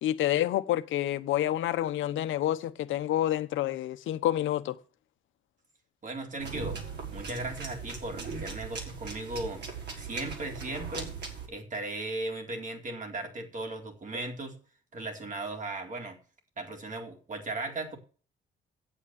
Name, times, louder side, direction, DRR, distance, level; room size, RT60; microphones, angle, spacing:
voice 1, 0.0-4.8, left 12 dB, 80° left, 1.1 m, -28 dB
voice 2, 6.0-6.8 7.1-11.1 11.5-14.6 14.9-16.2 16.6-18.0, right 2 dB, 40° right, 4.0 m, -37 dB
sound 1, 6.4-11.5, right 5 dB, 60° right, 5.6 m, -39 dB
10.0 x 8.5 x 7.2 m
cardioid pair, 90°, 20 cm